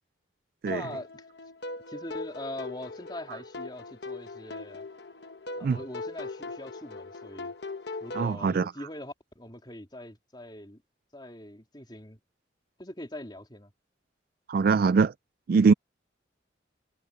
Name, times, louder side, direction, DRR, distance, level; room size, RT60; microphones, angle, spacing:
sound 1, 0.7-8.3, left 3 dB, 60° left, 1.2 m, -40 dB
voice 1, 0.7-1.2 1.9-4.9 5.6-7.5 8.0-10.8 11.1-12.2 12.8-13.7, left 1 dB, 25° left, 3.5 m, -42 dB
voice 2, 8.2-8.6 14.5-15.1 15.5-15.7, right 5 dB, 50° right, 0.3 m, -22 dB
head